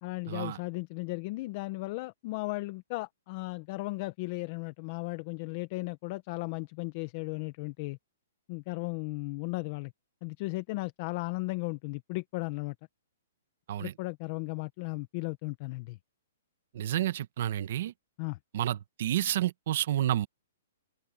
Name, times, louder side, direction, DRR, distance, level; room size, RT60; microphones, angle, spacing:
voice 1, 0.0-8.0 8.5-9.9 10.2-12.7 13.8-16.0 18.2-18.4, left 24 dB, 30° left, 0.7 m, -36 dB
voice 2, 16.7-17.9 18.5-20.3, right 12 dB, 45° right, 1.0 m, -30 dB
open air
hypercardioid pair, 170°, 0 cm